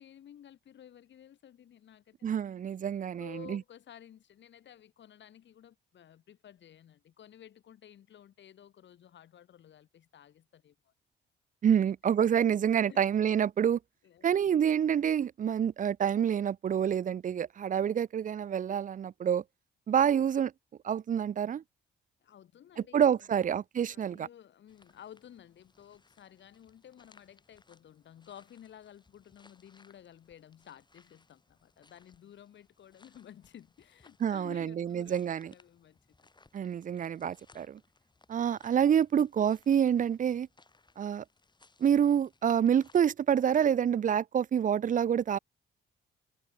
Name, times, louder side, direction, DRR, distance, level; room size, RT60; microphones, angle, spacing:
voice 1, 0.0-2.3 3.1-10.9 12.9-13.0 14.0-14.5 22.2-23.3 23.9-36.3, left 10 dB, 65° left, 6.8 m, -54 dB
voice 2, 2.2-3.6 11.6-13.8 14.2-19.4 19.9-20.5 20.8-21.6 22.9-24.3 34.2-35.5 36.5-37.8 38.3-40.5 41.0-41.2 41.8-45.4, right 8 dB, 40° right, 0.6 m, -27 dB
sound 1, 24.7-43.0, left 3 dB, 20° left, 4.6 m, -65 dB
open air
cardioid pair, 90°, 20 cm